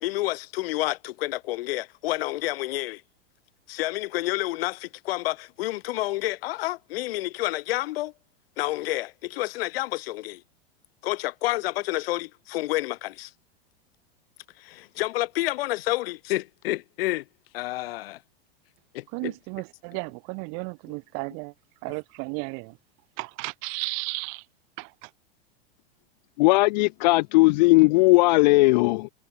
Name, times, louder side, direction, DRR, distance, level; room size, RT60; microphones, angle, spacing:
voice 1, 0.0-3.0 3.7-8.1 8.6-10.4 11.0-13.3 14.6-17.2 17.5-18.2 18.9-19.3, left 18 dB, 70° left, 0.9 m, -29 dB
voice 2, 19.1-21.5 21.8-22.8 23.2-24.5 24.8-25.1, right 39 dB, 45° right, 1.7 m, -34 dB
voice 3, 26.4-29.1, left 22 dB, 45° left, 0.4 m, -18 dB
supercardioid pair, 150°, 31 cm